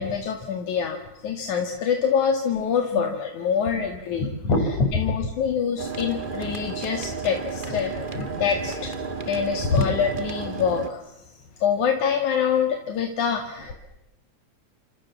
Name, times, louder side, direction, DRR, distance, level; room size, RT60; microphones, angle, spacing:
voice 1, 0.0-4.3 4.9-8.9 9.3-11.0 11.6-13.7, left 7 dB, 80° left, 4 dB, 3.5 m, -25 dB
voice 2, 3.5-3.9 4.4-5.0 8.1-8.2 9.7-10.0, left 2 dB, 60° left, 6 dB, 6.1 m, -23 dB
sound 1, 5.8-10.9, right 4 dB, 20° right, 1.9 m, -33 dB
29.0 x 26.5 x 7.3 m, 0.89 s
omnidirectional pair, 3.4 m